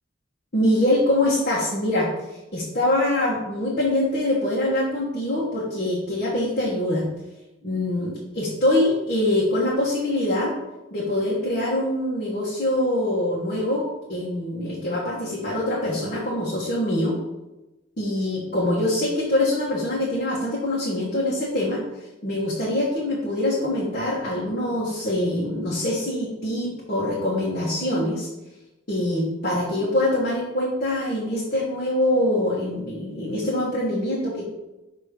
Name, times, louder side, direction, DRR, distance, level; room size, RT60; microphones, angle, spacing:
voice 1, 0.5-2.1 2.5-7.1 7.6-10.6 10.9-17.2 18.0-21.8 22.2-28.3 28.9-34.5, left 1 dB, 50° left, -7 dB, 1.3 m, -24 dB
6.3 x 3.0 x 5.1 m, 1.0 s
head